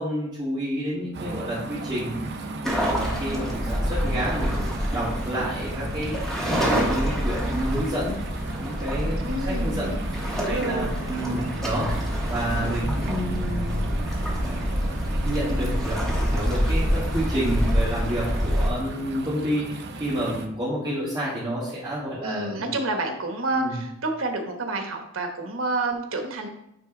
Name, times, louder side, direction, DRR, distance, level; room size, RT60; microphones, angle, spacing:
voice 1, 0.0-8.2 8.6-9.2 9.6-10.0 10.4-11.9 12.2-13.8 14.4-22.7 23.5-23.8, equal, 20° right, -10 dB, 1.6 m, -30 dB
sound 1, 1.1-20.5, right 2 dB, 55° right, 0.7 m, -36 dB
sound 2, 2.6-18.7, equal, ahead, 1.3 m, -27 dB
voice 2, 9.2-10.0 10.3-10.9 22.2-26.5, right 2 dB, 85° right, 4 dB, 1.1 m, -29 dB
9.0 x 3.3 x 3.8 m, 0.82 s
head